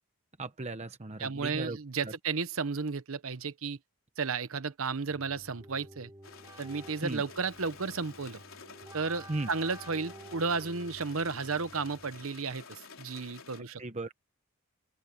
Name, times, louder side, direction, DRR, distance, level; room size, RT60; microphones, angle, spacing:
voice 1, 0.4-1.8 2.0-2.1 7.0-7.2 9.3-9.5 13.6-14.1, right 2 dB, 30° right, 1.0 m, -36 dB
voice 2, 1.2-3.8 4.2-6.1 6.6-8.4 8.9-13.8, right 4 dB, 75° right, 1.0 m, -33 dB
Keyboard (musical), 5.1-12.4, right 1 dB, 15° right, 3.1 m, -51 dB
sound 1, 6.2-13.6, left 5 dB, 70° left, 4.4 m, -51 dB
open air
head